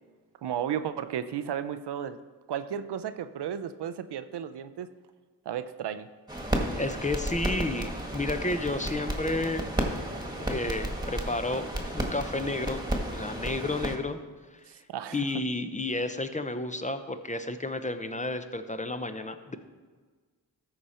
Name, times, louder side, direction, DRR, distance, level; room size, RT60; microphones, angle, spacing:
voice 1, 0.4-2.2 2.5-4.9 5.5-6.1 14.7-15.3, right 9 dB, 75° right, 11 dB, 0.6 m, -34 dB
sound 1, 6.3-14.0, right 1 dB, 10° right, 1.6 m, -32 dB
voice 2, 6.7-9.7 10.5-12.8 13.1-14.2 15.1-19.6, left 2 dB, 20° left, 9 dB, 0.7 m, -31 dB
13.5 x 5.1 x 4.3 m, 1.4 s
cardioid pair, 50°, 40 cm